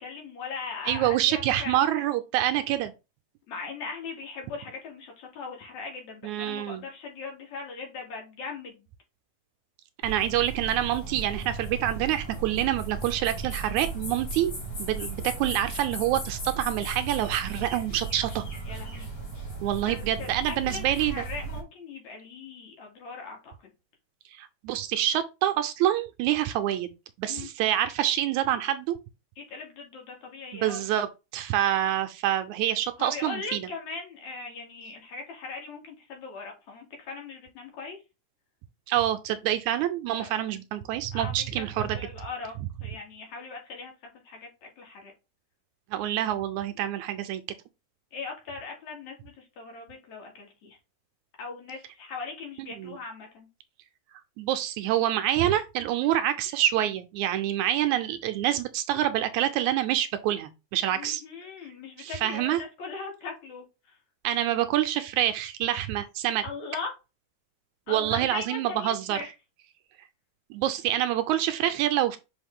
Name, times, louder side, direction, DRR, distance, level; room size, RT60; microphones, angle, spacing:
voice 1, 0.0-1.8 3.5-8.9 18.6-19.1 19.8-23.5 27.3-27.5 29.4-30.8 33.0-38.0 40.2-40.6 41.1-42.5 42.8-43.9 44.2-45.1 48.1-50.8 51.4-53.5 56.0-56.2 60.9-64.0 66.4-66.9 67.9-69.3, left 4 dB, 65° left, 3.2 m, -39 dB
voice 2, 0.9-2.9 6.2-6.8 10.0-14.5 14.8-18.4 19.6-21.2 24.3-26.9 27.2-29.0 30.5-31.1 31.3-33.7 38.9-42.0 45.9-47.4 52.8-53.0 54.4-61.2 62.0-62.6 64.2-66.4 67.9-69.2 70.5-72.2, right 12 dB, 80° right, 1.9 m, -26 dB
sound 1, 10.0-21.6, right 3 dB, 35° left, 2.6 m, -36 dB
6.3 x 4.4 x 3.5 m
omnidirectional pair, 3.6 m